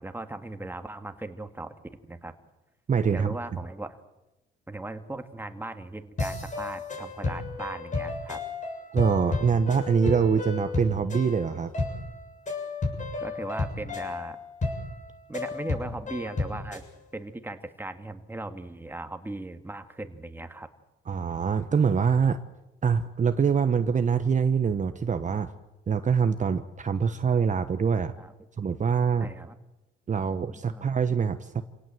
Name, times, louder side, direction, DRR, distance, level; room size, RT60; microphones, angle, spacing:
voice 1, 0.0-1.7 2.0-2.4 3.1-4.0 4.7-8.4 13.2-14.4 15.3-16.8 17.1-20.7 28.2-28.3 29.2-29.6 30.5-31.0, right 2 dB, 10° right, 7 dB, 2.1 m, -38 dB
voice 2, 2.9-3.4 8.9-11.7 21.1-22.4 22.8-25.5 25.9-28.1 28.6-29.3 30.1-31.6, right 6 dB, 40° right, 9 dB, 1.2 m, -24 dB
sound 1, 6.2-16.9, left 3 dB, 40° left, 7.4 m, -33 dB
27.5 x 18.0 x 7.8 m, 1.0 s
cardioid pair, 90°, 20 cm